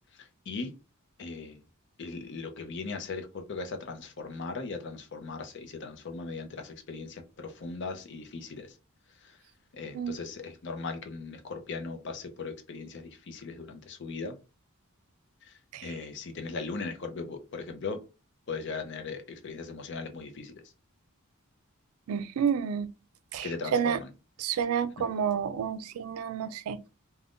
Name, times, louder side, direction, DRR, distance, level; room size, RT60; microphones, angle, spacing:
voice 1, 1.2-1.6 2.0-8.7 9.8-14.3 15.8-18.0 18.5-20.5 23.4-24.1, left 4 dB, 55° left, 0.5 m, -38 dB
voice 2, 22.1-22.9 23.3-24.0 24.4-26.9, right 7 dB, 80° right, 0.3 m, -30 dB
2.5 x 2.2 x 3.4 m
head